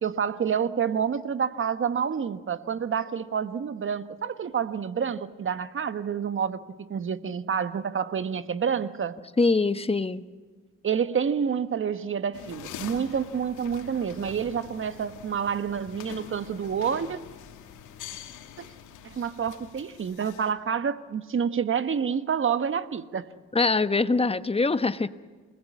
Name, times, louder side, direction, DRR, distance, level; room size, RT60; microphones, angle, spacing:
voice 1, 0.0-9.2 10.8-17.2 18.6-18.7 19.0-23.3, right 7 dB, 40° right, 1.4 m, -28 dB
voice 2, 9.4-10.2 23.5-25.1, left 3 dB, 20° left, 1.1 m, -23 dB
sound 1, 12.3-20.5, left 9 dB, 80° left, 2.7 m, -44 dB
28.0 x 20.5 x 8.5 m
cardioid pair, 90°, 30 cm